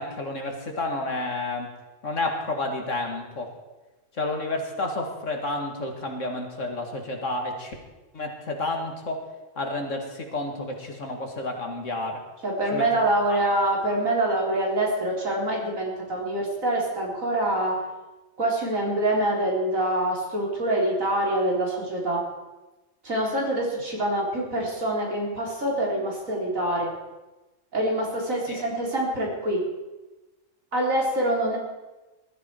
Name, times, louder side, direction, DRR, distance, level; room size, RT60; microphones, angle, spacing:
voice 1, 0.0-1.7 2.0-3.5 4.1-7.7 8.1-9.2 9.6-12.2 12.7-13.4 28.5-28.6, left 2 dB, 70° left, 2 dB, 2.5 m, -30 dB
voice 2, 12.4-17.8 18.4-22.2 23.0-26.9 27.7-29.6 30.7-31.6, right 1 dB, 85° right, -3 dB, 4.4 m, -25 dB
19.5 x 13.0 x 4.7 m, 1.1 s
omnidirectional pair, 1.4 m